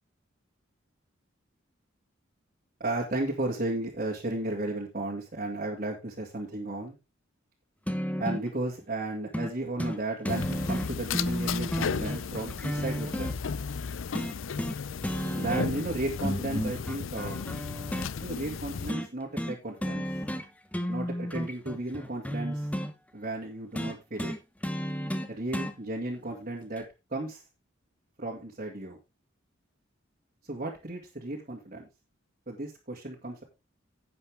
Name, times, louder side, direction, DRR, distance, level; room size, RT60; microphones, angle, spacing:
voice 1, 2.8-7.0 8.2-13.4 15.4-17.4 18.2-20.1 20.9-22.7 23.1-24.3 25.3-27.4 28.2-29.0 30.4-31.9 32.5-33.4, right 2 dB, 45° right, -3 dB, 2.4 m, -34 dB
sound 1, 7.9-8.5 9.3-9.5 9.8-10.0 10.2-13.3 14.1-14.8 15.0-15.9 16.2-18.1 18.9-19.1 19.4-19.6 19.8-20.5 20.7-22.9 23.7-25.7 26.8-26.9, equal, 10° left, 1.1 m, -32 dB
sound 2, 10.3-18.9, left 6 dB, 85° left, 0.5 m, -35 dB
11.0 x 8.5 x 3.6 m, 0.25 s
head